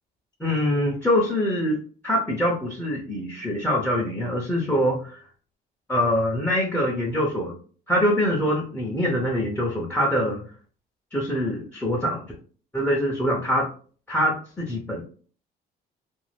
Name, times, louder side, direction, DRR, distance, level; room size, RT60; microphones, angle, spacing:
voice 1, 0.4-5.2 5.9-7.6 7.9-10.4 11.1-12.3 12.7-13.7 14.1-15.0, equal, 10° left, -2 dB, 0.6 m, -24 dB
2.5 x 2.2 x 3.3 m, 0.43 s
cardioid pair, 110°, 17 cm